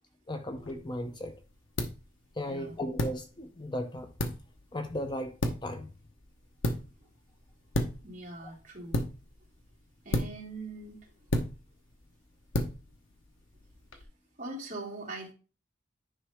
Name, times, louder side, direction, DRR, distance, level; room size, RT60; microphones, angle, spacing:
voice 1, 0.3-1.4 2.4-4.1 4.7-5.9, left 1 dB, 25° left, 0.6 m, -36 dB
sound 1, 0.6-14.0, left 1 dB, 80° left, 1.1 m, -36 dB
voice 2, 8.0-9.0 10.0-11.0 14.4-15.3, right 2 dB, 40° right, 2.6 m, -41 dB
9.9 x 5.1 x 3.5 m
head